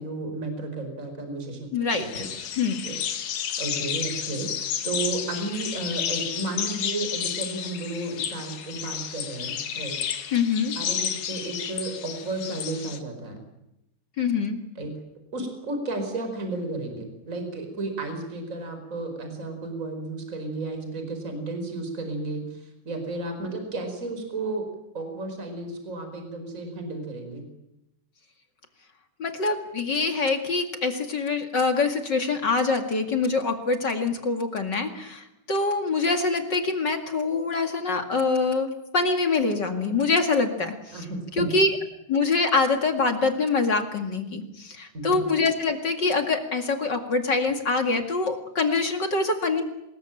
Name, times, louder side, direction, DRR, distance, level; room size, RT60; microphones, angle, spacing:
voice 1, 0.0-1.7 2.0-2.3 2.8-3.2 3.6-10.0 10.7-13.4 14.7-14.9 15.3-24.6 24.9-27.4 40.9-41.5 44.9-45.2, right 2 dB, 25° right, 6 dB, 5.0 m, -33 dB
voice 2, 1.7-2.3 2.6-2.8 10.3-10.7 14.2-14.6 29.2-38.7 38.9-41.0 41.4-41.7 42.1-49.6, left 4 dB, 35° left, 6 dB, 2.4 m, -25 dB
sound 1, 1.9-13.0, left 9 dB, 75° left, 3.1 m, -31 dB
24.5 x 21.0 x 9.0 m, 0.88 s
omnidirectional pair, 3.7 m